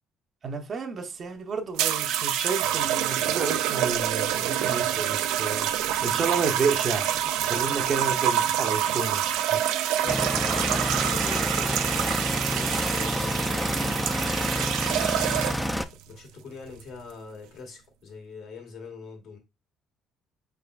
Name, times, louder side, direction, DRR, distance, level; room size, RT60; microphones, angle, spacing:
voice 1, 0.4-5.7 6.0-7.1 7.4-9.6, right 4 dB, 40° right, 0.6 m, -31 dB
sound 1, 1.8-15.8 16.7-17.0, right 11 dB, 85° right, 0.4 m, -27 dB
voice 2, 9.9-14.6 16.1-19.4, left 5 dB, 65° left, 1.6 m, -43 dB
sound 2, 10.1-15.8, equal, ahead, 0.4 m, -28 dB
4.7 x 3.4 x 2.3 m
cardioid pair, 110°, 0 cm